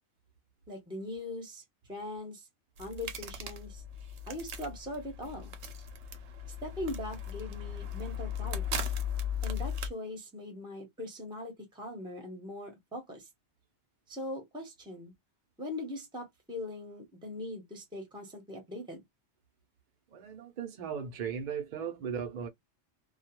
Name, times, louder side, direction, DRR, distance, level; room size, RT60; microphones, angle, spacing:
voice 1, 0.7-1.6 1.9-2.5 2.8-3.8 4.3-5.5 6.6-8.9 9.4-13.3 14.1-15.1 15.6-19.0, left 1 dB, 5° right, 0.8 m, -41 dB
sound 1, 2.8-9.9, left 5 dB, 80° right, 0.9 m, -37 dB
voice 2, 20.1-22.5, right 7 dB, 50° right, 0.7 m, -37 dB
2.3 x 2.3 x 2.8 m
omnidirectional pair, 1.2 m